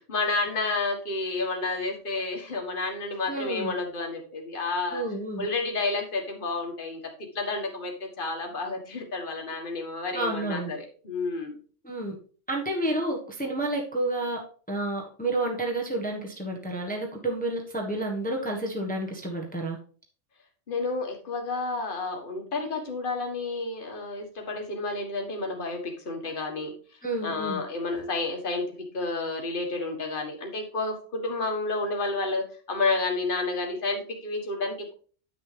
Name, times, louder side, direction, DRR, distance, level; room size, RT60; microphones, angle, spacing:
voice 1, 0.0-5.1 5.4-7.0 7.4-11.6 20.7-26.7 27.2-28.7 28.9-34.9, left 3 dB, 45° left, 2 dB, 1.7 m, -30 dB
voice 2, 3.3-3.7 4.9-5.5 10.1-10.7 11.8-12.2 12.5-14.4 14.7-19.8 27.0-27.6, right 2 dB, 5° left, 0 dB, 1.2 m, -30 dB
9.6 x 6.6 x 3.3 m, 0.42 s
omnidirectional pair, 1.3 m